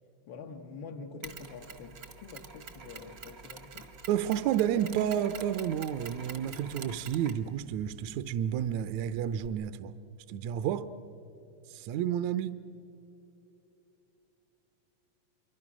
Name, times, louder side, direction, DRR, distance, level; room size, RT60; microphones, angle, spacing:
voice 1, 0.3-3.9, left 4 dB, 75° left, 2 dB, 1.0 m, -46 dB
Mechanisms, 1.2-9.5, right 5 dB, 60° right, 0.9 m, -48 dB
voice 2, 4.1-9.9 10.3-10.9 11.7-12.6, right 10 dB, 75° right, 12 dB, 1.7 m, -30 dB
27.0 x 24.0 x 6.1 m, 3.0 s
omnidirectional pair, 3.9 m